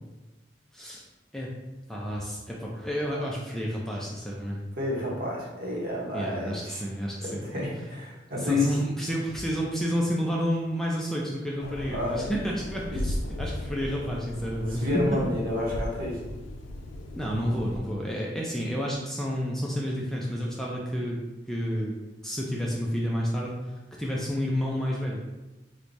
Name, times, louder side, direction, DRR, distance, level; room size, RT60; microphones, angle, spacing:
voice 1, 0.7-1.0 1.3-1.5 1.9-4.6 6.1-7.4 8.4-15.2 17.1-21.2 21.5-21.9 22.2-23.7 24.0-25.2, equal, ahead, -4 dB, 0.3 m, -30 dB
voice 2, 4.8-6.8 7.2-8.8 11.9-12.3 12.9-13.0 14.7-16.2, left 2 dB, 50° right, -4 dB, 0.9 m, -30 dB
sound 1, 11.6-17.8, left 1 dB, 85° left, 0.4 m, -36 dB
4.4 x 2.2 x 2.6 m, 1.1 s
head